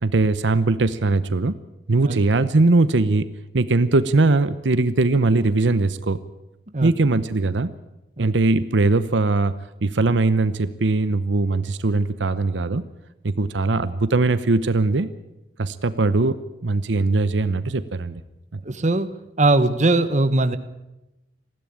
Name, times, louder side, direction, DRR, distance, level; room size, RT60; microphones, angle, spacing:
voice 1, 0.0-1.5 1.9-3.3 3.5-6.2 6.8-7.7 8.2-9.5 9.8-12.8 13.2-15.1 15.6-18.2 18.5-18.6, right 3 dB, 80° right, 14 dB, 0.8 m, -20 dB
voice 2, 18.6-19.1 19.4-20.6, right 2 dB, 40° right, 11 dB, 1.2 m, -20 dB
20.0 x 15.5 x 8.7 m, 0.96 s
head